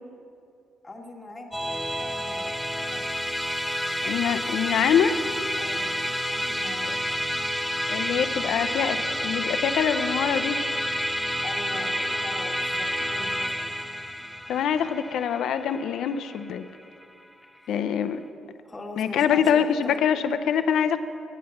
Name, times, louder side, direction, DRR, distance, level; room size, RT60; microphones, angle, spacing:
voice 1, 0.8-1.6 1.9-3.0 5.6-5.9 6.3-7.0 11.4-13.9 17.4-17.9 18.6-20.0, left 1 dB, 20° left, 0 dB, 1.6 m, -41 dB
Musical instrument, 1.5-17.0, equal, ahead, 0.6 m, -29 dB
voice 2, 4.0-5.2 7.9-10.6 14.5-16.6 17.7-18.2 19.0-21.0, left 8 dB, 75° left, 11 dB, 0.5 m, -24 dB
9.1 x 8.5 x 7.0 m, 2.5 s
cardioid pair, 90°, 0 cm